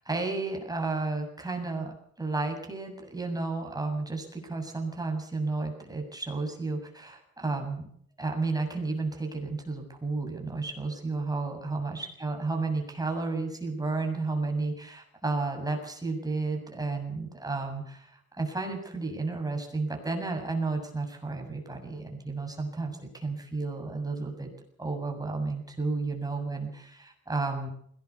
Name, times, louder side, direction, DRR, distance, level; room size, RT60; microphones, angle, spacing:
voice 1, 0.0-7.9 8.2-24.5 24.8-27.7, right 3 dB, 10° right, 2 dB, 7.3 m, -32 dB
21.0 x 18.5 x 7.0 m, 0.65 s
cardioid pair, 90°, 30 cm